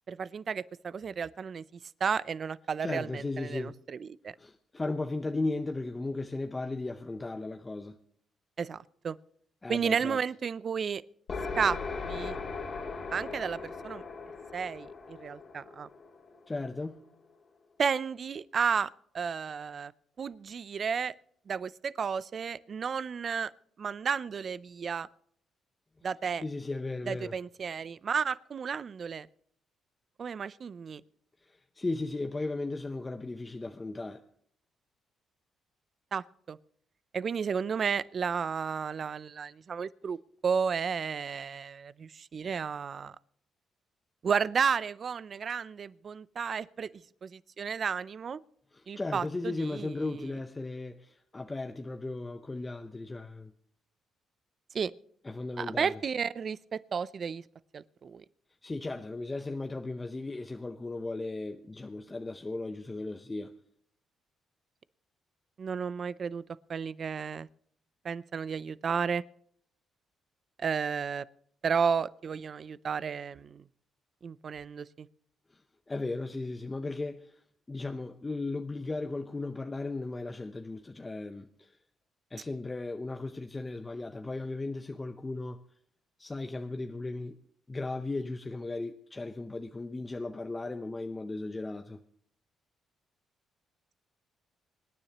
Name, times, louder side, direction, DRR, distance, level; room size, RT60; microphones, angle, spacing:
voice 1, 0.1-1.6 2.0-4.3 8.6-9.2 9.7-11.0 11.6-11.8 12.1-12.4 13.1-14.0 14.5-15.9 17.8-19.9 20.2-21.1 21.5-23.5 23.8-25.1 26.0-26.4 27.1-29.3 30.2-31.0 36.1-36.6 37.1-40.2 40.4-43.2 44.2-46.9 47.2-48.4 48.9-49.9 54.7-54.9 55.6-57.4 57.7-58.2 65.6-66.4 66.7-67.5 68.0-69.2 70.6-71.2 71.6-73.6 74.2-75.1, right 6 dB, 50° right, 0.5 m, -32 dB
voice 2, 2.8-3.8 4.4-8.0 9.6-10.2 16.5-17.0 26.4-27.4 31.4-34.2 48.7-53.5 55.2-56.0 58.6-63.6 75.5-75.6 75.9-81.8 82.3-85.6 86.2-87.4 87.7-92.0, left 2 dB, 20° left, 0.7 m, -36 dB
sound 1, 11.3-16.9, left 4 dB, 45° left, 2.4 m, -39 dB
25.0 x 9.9 x 3.0 m
cardioid pair, 90°, 0 cm